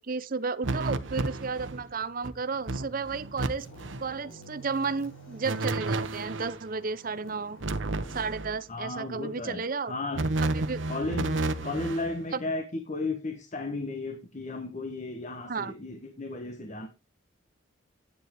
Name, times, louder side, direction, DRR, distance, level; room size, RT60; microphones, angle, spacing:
voice 1, 0.0-3.7 4.0-7.6 8.1-9.9 10.5-10.8 12.3-12.4 15.5-15.7, right 4 dB, 45° right, 0.7 m, -33 dB
sound 1, 0.6-1.9 2.2-2.3 2.7-3.5 3.8-4.1 5.4-6.6 7.6-8.6 10.1-12.1, right 2 dB, 70° right, 1.0 m, -31 dB
sound 2, 1.9-8.3, right 1 dB, 75° left, 6.2 m, -50 dB
voice 2, 8.7-10.2 10.9-16.9, left 2 dB, 35° left, 1.1 m, -34 dB
9.7 x 9.6 x 3.5 m
head